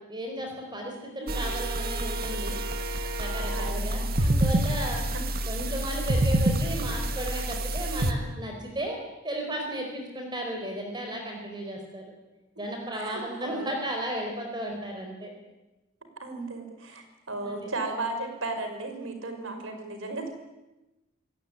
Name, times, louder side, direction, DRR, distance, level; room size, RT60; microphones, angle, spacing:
voice 1, 0.0-2.6 3.2-5.0 5.5-9.0 9.2-12.0 12.6-15.3 17.4-17.7, right 1 dB, 20° right, 2 dB, 4.6 m, -34 dB
sound 1, 1.3-8.1, right 1 dB, 45° right, 1.9 m, -27 dB
voice 2, 3.5-4.1 5.1-5.2 12.9-13.7 16.2-20.3, right 2 dB, 70° right, 6 dB, 5.4 m, -35 dB
28.0 x 17.0 x 9.9 m, 1.0 s
head